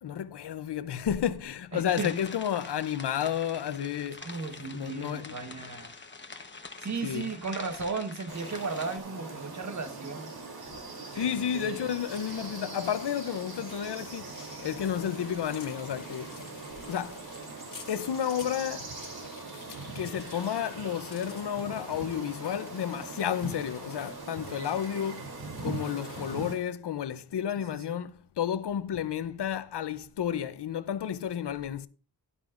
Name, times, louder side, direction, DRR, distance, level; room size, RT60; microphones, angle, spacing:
voice 1, 0.0-4.3 4.6-5.4 7.0-7.3 11.1-16.3 16.9-17.2 17.9-18.9 19.9-25.3 25.6-31.9, left 9 dB, 85° left, 0.7 m, -32 dB
voice 2, 1.7-2.1 4.2-5.9 6.8-10.3 11.1-11.9 27.6-28.0, right 4 dB, 45° right, 1.4 m, -36 dB
sound 1, 1.9-9.0, left 4 dB, 30° left, 1.1 m, -45 dB
sound 2, 8.3-26.5, right 3 dB, 65° right, 3.2 m, -41 dB
sound 3, 12.1-26.4, left 5 dB, 55° left, 1.4 m, -52 dB
12.5 x 11.5 x 2.5 m
wide cardioid pair, 110°, 40 cm